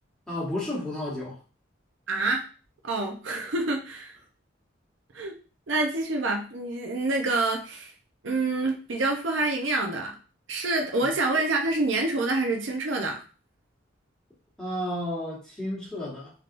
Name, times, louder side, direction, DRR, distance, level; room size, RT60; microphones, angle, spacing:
voice 1, 0.3-1.4 11.0-11.1 14.6-16.3, left 1 dB, 5° left, -6 dB, 1.2 m, -32 dB
voice 2, 2.1-2.4 2.8-4.1 5.1-5.3 5.7-7.9 8.2-10.1 10.5-13.2, right 2 dB, 70° right, 2 dB, 0.7 m, -27 dB
3.4 x 2.8 x 2.5 m, 0.35 s
head